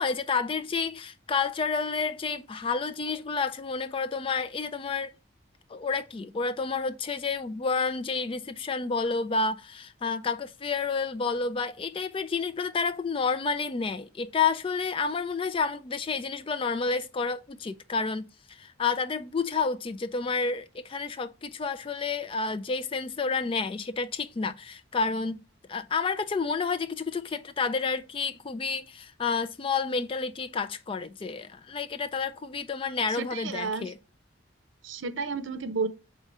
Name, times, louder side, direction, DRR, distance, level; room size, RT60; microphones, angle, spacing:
voice 1, 0.0-5.1 5.7-25.4 25.7-34.0, left 4 dB, 25° left, 0.3 m, -30 dB
voice 2, 33.1-33.9 34.8-35.9, right 4 dB, 75° right, 0.7 m, -32 dB
4.8 x 3.7 x 5.4 m
head